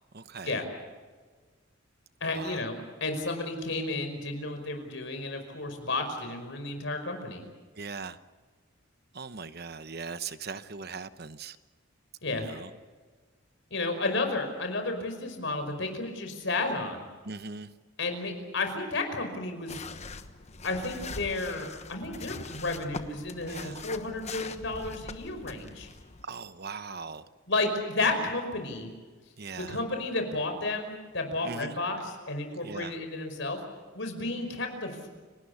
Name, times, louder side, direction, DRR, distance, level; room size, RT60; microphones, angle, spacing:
voice 1, 0.1-0.6 2.3-2.7 7.8-8.2 9.1-11.6 12.3-12.7 17.2-17.7 23.5-23.8 26.2-27.2 29.4-29.8 31.4-31.8 32.6-32.9, right 4 dB, 50° right, 12 dB, 1.0 m, -40 dB
voice 2, 2.2-7.4 12.2-12.5 13.7-17.0 18.0-19.8 20.6-25.9 27.5-28.9 29.6-33.6 33.9-35.1, left 2 dB, 60° left, 6 dB, 5.4 m, -32 dB
sound 1, 19.7-26.2, left 4 dB, 30° left, 1.2 m, -42 dB
30.0 x 19.0 x 7.2 m, 1.4 s
head